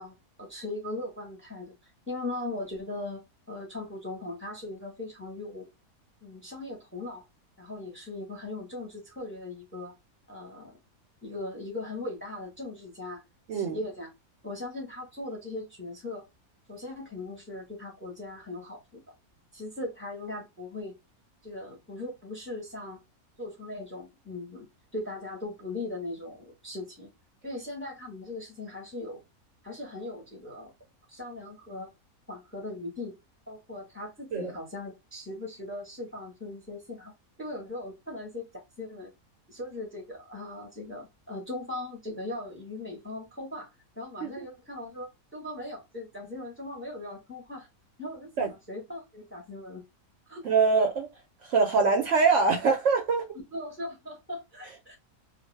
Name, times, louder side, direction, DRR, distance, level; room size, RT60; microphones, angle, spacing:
voice 1, 0.0-1.7 2.1-5.7 6.2-7.2 7.6-9.9 10.3-10.7 11.2-13.2 13.5-14.1 14.4-16.2 16.7-19.0 19.5-20.9 21.4-23.0 23.4-24.7 24.9-27.1 27.4-29.2 29.6-30.7 31.1-31.9 32.3-33.1 33.5-37.1 37.4-39.1 39.5-43.7 44.0-47.7 48.0-49.8 50.3-50.5 53.5-55.0, left 2 dB, 10° left, 0.7 m, -39 dB
voice 2, 50.4-51.1 51.4-53.3, right 4 dB, 65° right, 0.8 m, -24 dB
2.4 x 2.1 x 3.2 m
omnidirectional pair, 1.5 m